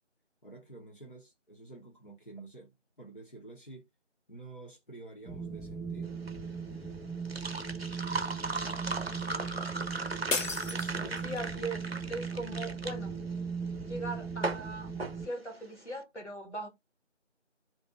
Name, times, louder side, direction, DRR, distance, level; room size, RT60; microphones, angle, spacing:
voice 1, 0.4-3.9 4.3-6.2 8.6-10.3 10.7-11.4, right 2 dB, 45° left, 0.8 m, -50 dB
Wind, 5.3-15.3, right 5 dB, ahead, 0.4 m, -39 dB
sound 1, 6.1-15.9, right 3 dB, 55° right, 0.6 m, -38 dB
sound 2, 10.3-11.6, left 3 dB, 85° left, 0.8 m, -34 dB
voice 2, 11.2-13.2 13.8-14.9 15.2-16.7, right 2 dB, 70° left, 1.5 m, -39 dB
2.6 x 2.3 x 3.6 m
figure-of-eight pair, 175°, 37 cm